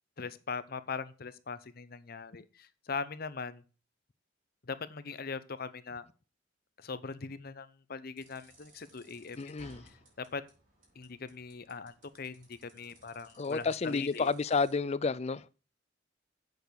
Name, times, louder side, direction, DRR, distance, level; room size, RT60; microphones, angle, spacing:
voice 1, 0.2-3.6 4.6-6.0 6.8-9.7 10.2-10.4 11.0-14.3, left 5 dB, 50° left, 0.8 m, -41 dB
sound 1, 8.2-14.7, right 1 dB, 45° right, 5.2 m, -61 dB
voice 2, 9.4-9.8 13.4-15.5, left 4 dB, 35° left, 0.4 m, -30 dB
8.1 x 6.6 x 6.7 m
head